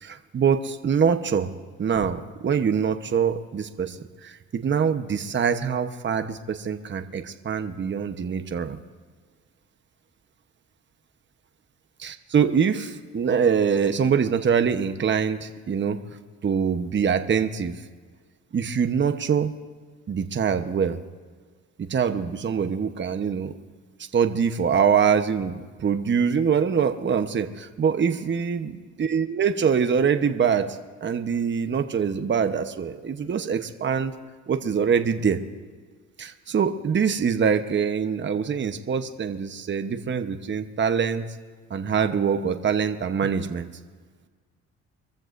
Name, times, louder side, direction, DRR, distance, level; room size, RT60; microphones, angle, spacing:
voice 1, 0.0-1.5 1.8-4.0 4.2-8.8 12.0-16.0 16.4-17.7 18.5-19.5 20.1-21.0 21.8-23.5 24.1-28.7 29.0-30.7 31.0-34.1 34.5-35.4 36.2-41.2 41.7-43.7, right 7 dB, 40° right, 7 dB, 1.0 m, -24 dB
24.5 x 14.5 x 2.6 m, 1.5 s
cardioid pair, 90°, 30 cm